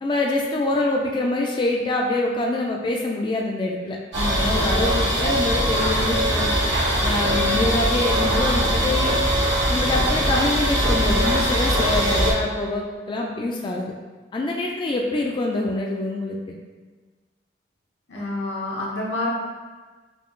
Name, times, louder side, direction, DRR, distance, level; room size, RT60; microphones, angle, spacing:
voice 1, 0.0-6.5 7.0-9.1 9.7-13.9 14.3-16.5, left 2 dB, 25° left, -1 dB, 0.3 m, -25 dB
sound 1, 4.1-12.3, equal, 90° right, 1.4 m, -21 dB
voice 2, 18.1-19.3, left 2 dB, 85° left, -4 dB, 1.0 m, -28 dB
5.1 x 2.3 x 3.1 m, 1.4 s
head